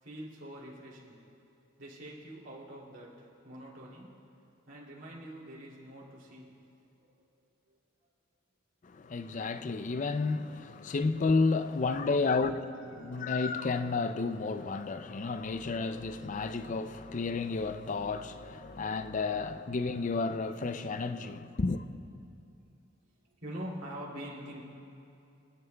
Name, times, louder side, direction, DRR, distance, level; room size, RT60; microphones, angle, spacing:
voice 1, 0.0-1.3 1.8-4.2 4.7-6.5 7.0-7.3 7.7-7.8 11.8-13.3 23.4-24.6, equal, 70° right, 2.7 m, -46 dB
voice 2, 8.8-21.8, left 4 dB, 40° left, 0.4 m, -31 dB
26.5 x 10.5 x 2.3 m
head